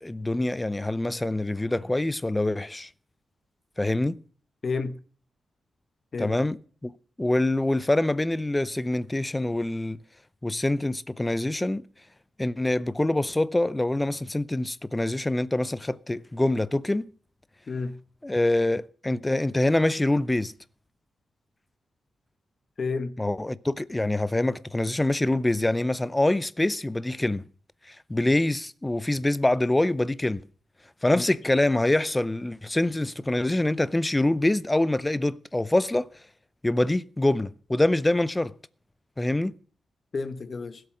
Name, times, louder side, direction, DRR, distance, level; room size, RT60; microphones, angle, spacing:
voice 1, 0.0-2.9 3.8-4.2 6.2-6.9 7.2-10.0 10.4-11.9 12.4-17.1 18.2-20.5 23.2-27.5 27.9-30.4 31.0-36.1 36.6-38.5 39.2-39.5, left 1 dB, 10° left, 0.5 m, -25 dB
voice 2, 4.6-5.0 6.1-6.4 17.7-18.0 22.8-23.1 31.1-31.2 40.1-40.8, left 4 dB, 40° left, 1.0 m, -30 dB
16.5 x 7.9 x 6.1 m
wide cardioid pair, 140°, 0 cm